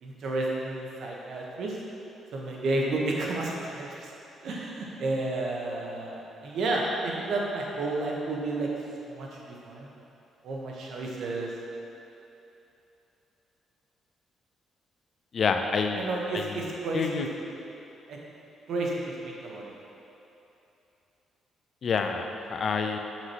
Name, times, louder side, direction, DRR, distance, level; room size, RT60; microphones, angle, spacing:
voice 1, 0.0-1.8 2.3-4.1 4.4-8.7 9.0-9.9 10.4-11.5 15.9-17.3 18.1-18.2 18.7-19.7, right 2 dB, 70° right, -2 dB, 1.1 m, -31 dB
voice 2, 15.3-16.1 16.3-16.7 16.9-17.3 21.8-23.0, left 5 dB, 50° left, 5 dB, 0.5 m, -28 dB
7.8 x 5.8 x 3.0 m, 3.0 s
cardioid pair, 90°, 0 cm